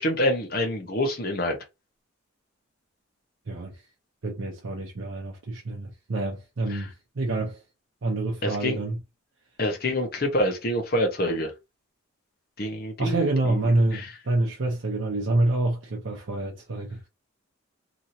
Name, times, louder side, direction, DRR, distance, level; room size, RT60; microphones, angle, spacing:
voice 1, 0.0-1.6 6.7-6.8 8.4-8.8 9.6-11.5 12.6-13.6 13.9-14.1, left 1 dB, 45° left, 0.8 m, -26 dB
voice 2, 3.5-3.8 4.2-7.6 8.0-9.0 13.0-17.0, right 2 dB, 60° right, 0.6 m, -27 dB
2.9 x 2.7 x 2.6 m
head